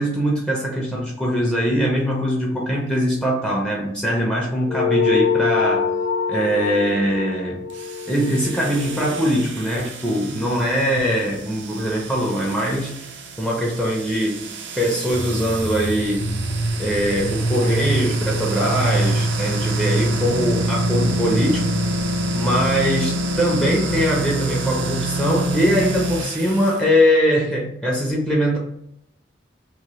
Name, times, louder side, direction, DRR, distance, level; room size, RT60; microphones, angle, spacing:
voice 1, 0.0-5.9 6.3-7.6 8.1-12.9 13.4-14.5 14.8-16.4 16.8-21.7 22.3-28.6, equal, 5° left, -3 dB, 0.5 m, -22 dB
sound 1, 4.7-9.5, left 6 dB, 75° left, 0.3 m, -25 dB
sound 2, 7.7-26.8, right 1 dB, 75° right, 0.5 m, -28 dB
sound 3, 15.1-22.9, right 2 dB, 35° left, 0.8 m, -25 dB
2.9 x 2.1 x 2.9 m, 0.75 s
head